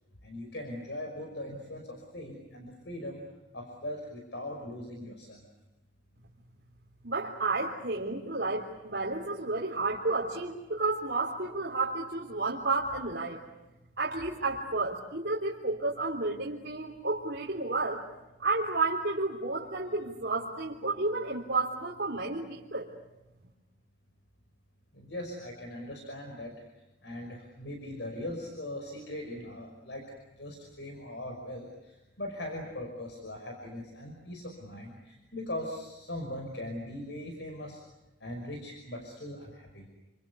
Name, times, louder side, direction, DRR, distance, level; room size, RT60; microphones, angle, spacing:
voice 1, 0.2-3.2 3.5-5.4 24.9-26.5 27.0-30.0 30.4-37.8 38.2-39.9, left 1 dB, 75° left, 2 dB, 5.6 m, -40 dB
voice 2, 7.0-13.4 14.0-18.0 18.4-22.9, right 3 dB, 65° right, -3 dB, 3.6 m, -31 dB
29.5 x 26.5 x 7.0 m, 1.0 s
head